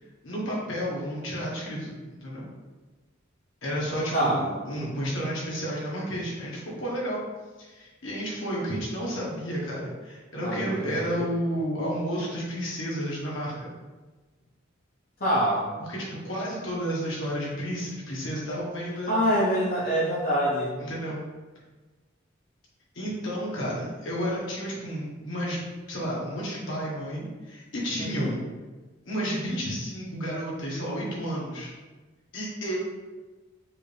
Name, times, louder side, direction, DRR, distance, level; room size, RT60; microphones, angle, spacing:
voice 1, 0.2-2.5 3.6-7.2 7.6-13.7 15.8-19.3 20.8-21.2 22.9-25.6 25.9-28.4 29.0-31.7 32.3-32.8, equal, 75° left, -5 dB, 1.2 m, -31 dB
voice 2, 4.1-4.5 10.4-11.3 15.2-15.7 19.1-20.7 28.0-28.3, equal, 50° left, -8 dB, 0.8 m, -25 dB
4.7 x 2.6 x 3.4 m, 1.3 s
head